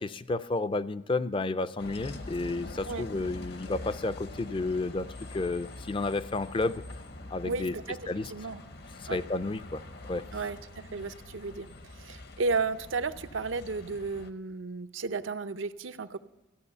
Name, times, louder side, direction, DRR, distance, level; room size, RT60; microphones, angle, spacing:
voice 1, 0.0-5.1 5.3-6.8 7.3-7.7 8.1-8.3 9.0-9.8 10.1-10.3, left 2 dB, 25° left, 14 dB, 0.4 m, -31 dB
Bus, 1.8-14.3, left 2 dB, 55° left, 0.8 m, -45 dB
voice 2, 7.4-8.0 8.3-8.6 9.1-9.2 10.3-11.7 11.9-16.2, right 4 dB, 80° right, 10 dB, 0.6 m, -33 dB
14.5 x 8.8 x 6.8 m, 1.0 s
head